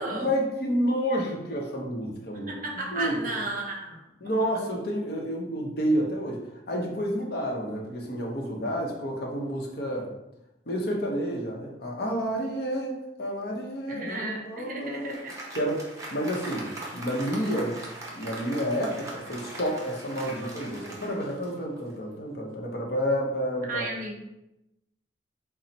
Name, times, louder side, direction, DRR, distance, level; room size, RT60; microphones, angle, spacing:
voice 1, 0.1-3.1 4.2-10.1 10.7-15.1 15.6-15.8 16.1-17.7 18.1-23.9, equal, 60° left, 0 dB, 0.7 m, -30 dB
voice 2, 2.5-4.0 13.9-15.3 23.7-24.2, right 2 dB, 50° right, 0 dB, 0.7 m, -33 dB
Applause, 14.5-22.0, right 2 dB, 20° right, 0.6 m, -41 dB
4.1 x 2.0 x 4.0 m, 0.90 s
head